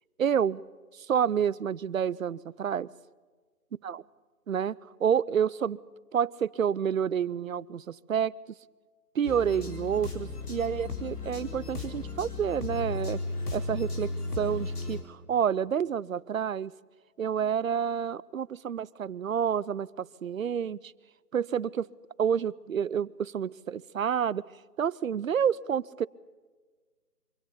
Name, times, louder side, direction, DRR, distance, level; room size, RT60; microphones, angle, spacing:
voice 1, 0.2-0.6 0.9-2.9 3.8-4.0 4.5-5.8 6.1-8.3 9.1-13.2 13.5-16.7 17.2-20.9 21.3-21.9 22.2-24.5 24.8-26.1, right 8 dB, 60° right, 22 dB, 0.6 m, -29 dB
sound 1, 9.2-15.0, left 3 dB, 75° left, 4.4 m, -35 dB
24.5 x 18.0 x 7.0 m, 1.4 s
figure-of-eight pair, 160°, 46 cm